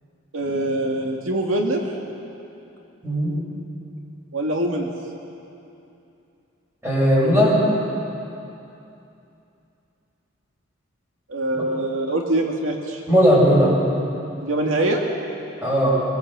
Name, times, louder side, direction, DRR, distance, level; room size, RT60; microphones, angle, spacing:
voice 1, 0.3-1.8 4.3-4.9 11.3-13.0 14.4-15.0, right 1 dB, 85° right, 1 dB, 2.2 m, -23 dB
voice 2, 3.0-3.3 6.8-7.6 11.5-11.6 13.1-13.8 15.6-16.0, equal, 10° right, -6 dB, 7.2 m, -17 dB
23.0 x 21.5 x 7.7 m, 2.8 s
head